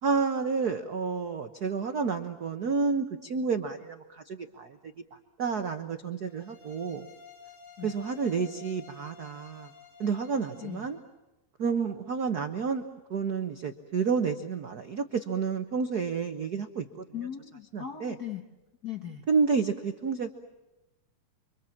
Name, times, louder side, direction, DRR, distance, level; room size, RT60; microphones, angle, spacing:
voice 1, 0.0-4.8 5.1-7.1 7.8-9.7 10.0-11.0 11.6-17.0 17.7-18.2 19.3-20.3, right 5 dB, 70° right, 6 dB, 0.9 m, -30 dB
sound 1, 6.2-11.0, left 5 dB, 75° left, 5.1 m, -52 dB
voice 2, 17.1-18.4 18.8-19.3, left 10 dB, 55° left, 4 dB, 1.0 m, -38 dB
29.5 x 24.5 x 7.3 m, 1.0 s
omnidirectional pair, 3.4 m